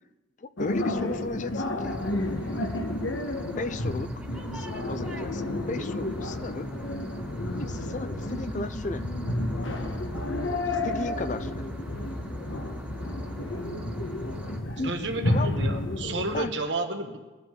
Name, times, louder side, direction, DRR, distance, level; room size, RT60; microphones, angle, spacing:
voice 1, 0.4-2.0 3.5-6.7 7.5-9.0 10.8-11.6 14.8-14.9 15.3-15.5 16.3-16.5, left 3 dB, 40° left, 13 dB, 0.4 m, -35 dB
sound 1, 0.6-16.4, left 1 dB, 85° left, 1.3 m, -31 dB
sound 2, 1.8-14.6, equal, 10° right, 1.6 m, -40 dB
voice 2, 14.8-17.2, right 2 dB, 70° right, 3 dB, 1.6 m, -31 dB
20.5 x 11.0 x 3.8 m, 1.2 s
head